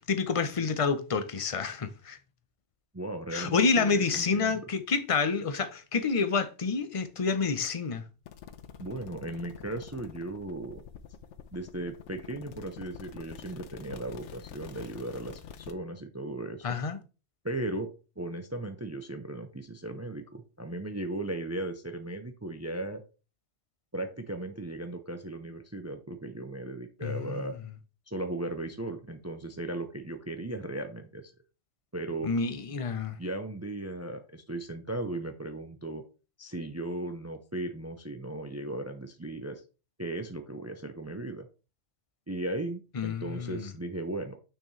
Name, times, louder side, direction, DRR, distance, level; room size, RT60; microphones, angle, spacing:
voice 1, 0.1-2.2 3.3-8.0 16.6-17.0 27.0-27.5 32.2-33.2 42.9-43.7, left 5 dB, 35° left, 0.7 m, -28 dB
voice 2, 2.9-4.6 8.8-10.8 11.5-16.8 17.4-17.9 18.2-23.0 23.9-27.6 28.1-31.3 31.9-32.3 33.2-36.0 36.4-39.6 40.0-41.5 42.3-44.4, right 2 dB, 20° right, 0.4 m, -37 dB
sound 1, 8.2-15.7, left 8 dB, 70° left, 1.0 m, -47 dB
6.5 x 6.2 x 3.2 m
omnidirectional pair, 1.3 m